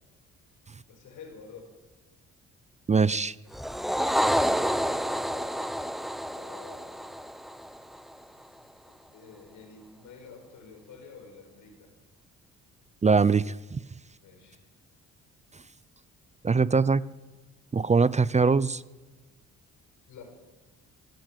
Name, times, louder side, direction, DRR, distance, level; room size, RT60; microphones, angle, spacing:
voice 1, 0.9-1.7 4.4-5.7 6.3-7.3 8.9-11.9 14.2-14.6 20.1-20.2, left 5 dB, 80° left, 5 dB, 6.2 m, -49 dB
voice 2, 2.9-3.4 13.0-13.8 16.4-17.0 17.7-18.8, right 4 dB, 25° right, 19 dB, 0.6 m, -22 dB
sound 1, 3.5-8.1, equal, ahead, 0.9 m, -29 dB
23.5 x 15.5 x 9.0 m, 1.2 s
cardioid pair, 90°, 30 cm